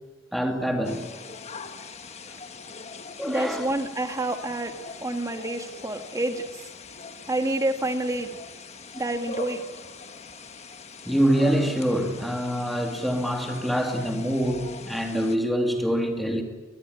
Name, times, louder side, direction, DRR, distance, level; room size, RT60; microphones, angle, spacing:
voice 1, 0.3-1.2 3.2-3.7 11.1-16.4, equal, ahead, 2.6 m, -25 dB
sound 1, 0.8-15.4, left 4 dB, 30° left, 1.4 m, -42 dB
voice 2, 3.2-4.8 5.0-6.6 7.3-8.3 8.9-9.6, right 1 dB, 15° right, 1.6 m, -28 dB
22.0 x 21.5 x 9.8 m
head